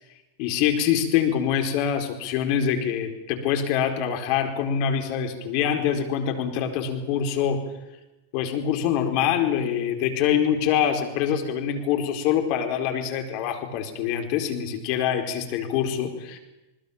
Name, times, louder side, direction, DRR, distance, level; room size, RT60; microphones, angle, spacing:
voice 1, 0.4-7.6 8.3-16.4, left 9 dB, 50° left, 5 dB, 4.6 m, -25 dB
28.5 x 20.5 x 7.3 m, 1.0 s
hypercardioid pair, 95°, 0 cm